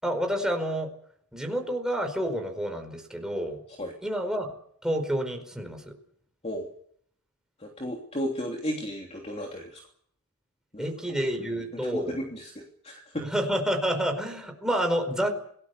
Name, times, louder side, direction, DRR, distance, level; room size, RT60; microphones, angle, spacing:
voice 1, 0.0-0.9 1.3-3.6 4.0-4.5 4.8-5.9 10.8-12.2 13.2-15.4, equal, 5° right, 3 dB, 4.8 m, -29 dB
voice 2, 7.6-9.8 10.7-11.2 11.9-13.3, equal, 30° left, 0 dB, 3.2 m, -34 dB
28.0 x 19.0 x 6.9 m, 0.63 s
head